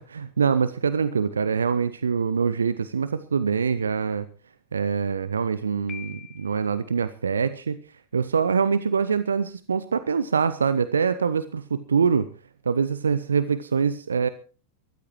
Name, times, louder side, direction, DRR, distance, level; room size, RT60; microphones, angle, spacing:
voice 1, 0.0-4.3 4.7-7.8 8.1-12.3 12.7-14.3, right 6 dB, 70° right, 14 dB, 0.6 m, -24 dB
Piano, 5.9-6.8, left 9 dB, 25° left, 0.7 m, -43 dB
23.0 x 13.5 x 3.1 m, 0.36 s
figure-of-eight pair, 90°, 0 cm